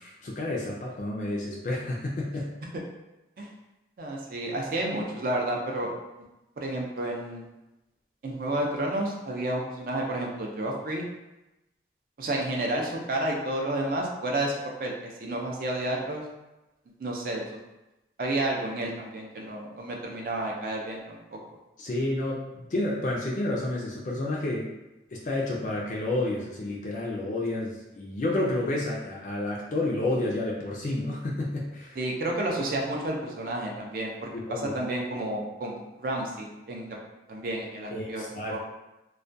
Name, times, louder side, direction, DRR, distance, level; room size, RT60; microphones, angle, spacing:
voice 1, 0.0-2.4 21.8-24.7 25.1-32.0 34.3-34.8 37.9-38.6, left 2 dB, 45° left, -3 dB, 0.3 m, -30 dB
voice 2, 4.0-5.9 6.6-7.5 8.2-11.1 12.2-14.5 14.8-14.9 15.2-16.2 17.0-17.4 18.2-21.4 32.0-37.0 37.3-38.6, right 1 dB, 50° right, -1 dB, 0.4 m, -31 dB
2.2 x 2.1 x 2.5 m, 0.98 s
head